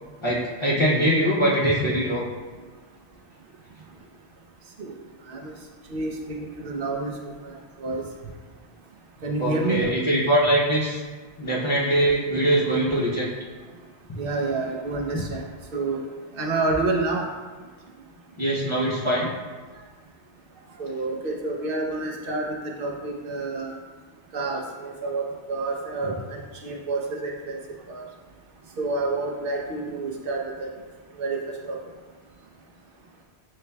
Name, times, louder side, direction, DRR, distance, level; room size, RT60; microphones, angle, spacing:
voice 1, 0.2-2.3 7.8-7.9 9.4-11.0 11.4-13.3 15.1-15.2 18.4-19.3 26.0-26.1, right 1 dB, 35° left, -8 dB, 0.7 m, -22 dB
voice 2, 5.9-7.1 7.4-7.5 7.8-8.0 9.2-9.9 14.2-15.4 15.7-16.0 16.4-17.3 20.8-23.7 24.3-27.6 27.9-28.0 28.8-30.7 31.2-31.4 31.7-31.8, right 3 dB, 60° right, 0 dB, 0.8 m, -28 dB
6.7 x 3.2 x 2.2 m, 1.4 s
omnidirectional pair, 1.1 m